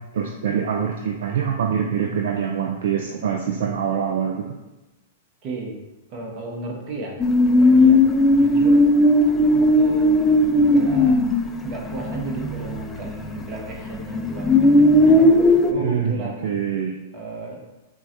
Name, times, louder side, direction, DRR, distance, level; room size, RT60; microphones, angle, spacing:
voice 1, 0.0-4.6 15.8-17.0, right 7 dB, 60° right, 3 dB, 0.3 m, -25 dB
voice 2, 5.4-5.8 6.1-8.0 8.3-8.9 9.3-10.2 10.6-11.2 11.6-15.4 15.7-16.5 17.1-17.6, right 2 dB, 40° right, -1 dB, 1.0 m, -33 dB
sound 1, 7.2-13.4 13.7-15.7, left 1 dB, 10° left, 0.4 m, -17 dB
5.9 x 2.2 x 2.9 m, 1.0 s
figure-of-eight pair, 100°, 0 cm